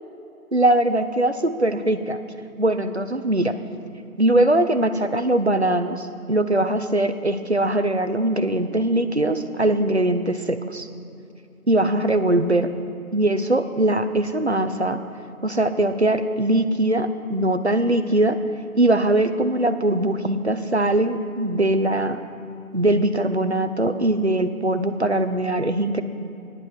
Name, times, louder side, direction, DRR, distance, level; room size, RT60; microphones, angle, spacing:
voice 1, 0.5-2.2 2.6-3.6 4.2-10.9 11.7-12.7 13.1-15.0 15.4-18.4 18.8-22.2 22.7-26.0, right 1 dB, 50° right, 10 dB, 0.5 m, -21 dB
11.5 x 9.9 x 4.7 m, 2.7 s
figure-of-eight pair, 170°, 44 cm